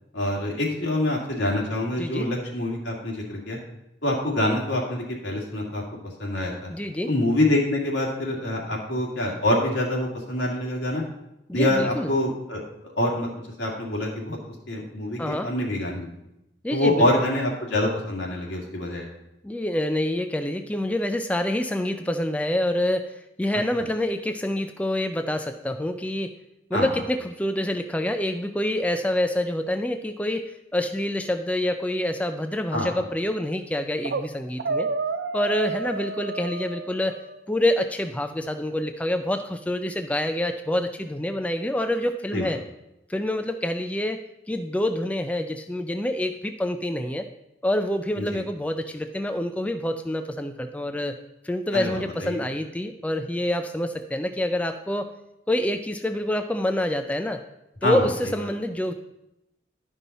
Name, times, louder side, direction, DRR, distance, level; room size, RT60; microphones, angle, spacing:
voice 1, 0.1-3.6 4.0-5.8 6.2-6.7 7.1-11.0 11.5-12.6 13.0-13.3 13.6-16.1 16.7-19.1 26.7-26.9 32.7-33.0 42.3-42.5 48.2-48.4 51.7-52.4 57.8-58.1, left 1 dB, 85° left, -2 dB, 2.2 m, -25 dB
voice 2, 2.0-2.3 6.7-7.1 11.5-12.1 15.2-15.5 16.6-17.1 19.4-26.4 26.7-34.9 35.3-37.2 37.5-42.6 43.1-44.2 44.5-47.3 47.6-51.2 51.4-55.1 55.5-57.4 57.8-58.9, left 1 dB, 10° left, 7 dB, 0.3 m, -27 dB
sound 1, 34.0-34.3 34.6-37.4, right 4 dB, 75° right, 0.5 m, -30 dB
11.5 x 5.4 x 4.1 m, 0.87 s
head